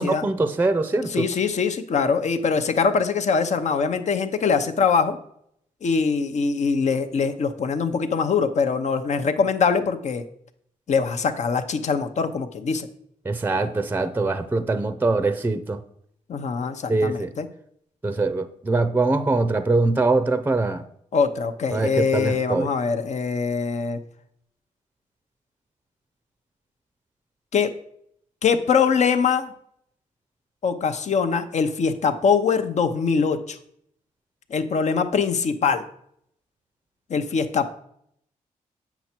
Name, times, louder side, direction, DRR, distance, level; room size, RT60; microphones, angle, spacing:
voice 1, 0.0-1.2 13.3-15.8 16.9-17.3 18.0-20.8 21.7-22.7, right 3 dB, 15° right, 11 dB, 0.5 m, -23 dB
voice 2, 1.1-5.2 5.8-10.2 10.9-12.9 16.3-17.5 21.1-24.0 27.5-27.7 28.4-29.5 30.6-33.6 34.5-35.8 37.1-37.7, left 5 dB, 60° left, 8 dB, 0.8 m, -23 dB
8.0 x 5.9 x 4.4 m, 0.69 s
cardioid pair, 85°, 14 cm